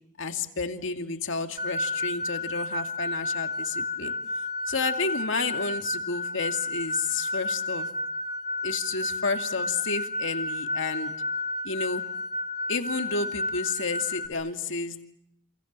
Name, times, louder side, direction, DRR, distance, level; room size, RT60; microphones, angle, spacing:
voice 1, 0.2-4.2 4.7-7.9 8.6-11.1 11.6-12.1 12.7-15.0, left 4 dB, 65° left, 6 dB, 2.5 m, -31 dB
sound 1, 1.6-14.3, left 2 dB, 20° right, 3.8 m, -31 dB
28.0 x 28.0 x 7.5 m, 0.75 s
head